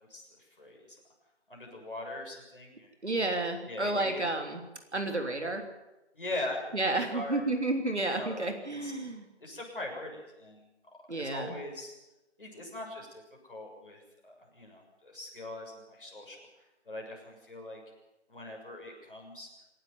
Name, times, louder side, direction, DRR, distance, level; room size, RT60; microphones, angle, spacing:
voice 1, 1.5-2.9 3.6-4.2 6.1-7.4 8.1-8.4 8.8-8.9 9.4-10.6 11.1-11.9 12.4-13.2 13.5-16.5 16.9-17.8 18.3-19.5, left 1 dB, 50° left, -1 dB, 6.9 m, -41 dB
voice 2, 3.0-4.6 4.9-5.7 6.7-9.3 11.1-11.6, right 2 dB, 75° right, 5 dB, 3.5 m, -31 dB
26.0 x 11.5 x 9.6 m, 1.0 s
figure-of-eight pair, 180°, 34 cm